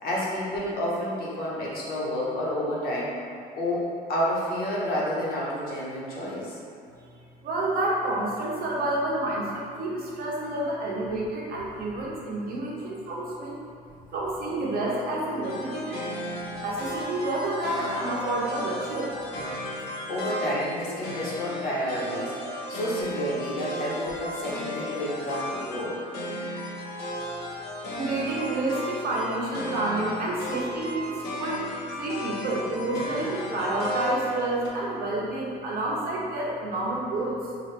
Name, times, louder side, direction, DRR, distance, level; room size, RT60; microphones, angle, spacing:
voice 1, 0.0-3.1 3.5-6.6 20.1-26.0, equal, 65° left, -6 dB, 1.1 m, -30 dB
voice 2, 7.1-13.6 14.1-16.0 16.6-19.2 27.2-31.7 32.0-37.4, right 2 dB, 60° right, -4 dB, 0.9 m, -29 dB
sound 1, 15.4-34.7, left 1 dB, 80° left, 0.8 m, -35 dB
4.7 x 2.5 x 3.3 m, 2.4 s
cardioid pair, 110°, 17 cm